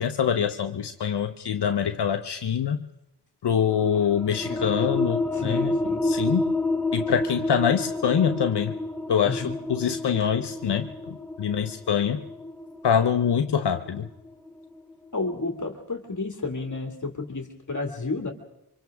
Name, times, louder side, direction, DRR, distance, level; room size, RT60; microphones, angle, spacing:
voice 1, 0.0-2.9 3.4-6.5 6.9-8.8 9.1-12.2 12.8-14.1, left 8 dB, 70° left, 6 dB, 0.9 m, -25 dB
sound 1, 3.7-14.9, left 2 dB, ahead, 1.8 m, -30 dB
voice 2, 5.3-6.0 9.2-9.5 15.1-18.3, left 3 dB, 45° left, 4 dB, 2.3 m, -31 dB
29.0 x 25.0 x 3.6 m, 0.87 s
cardioid pair, 75°, 42 cm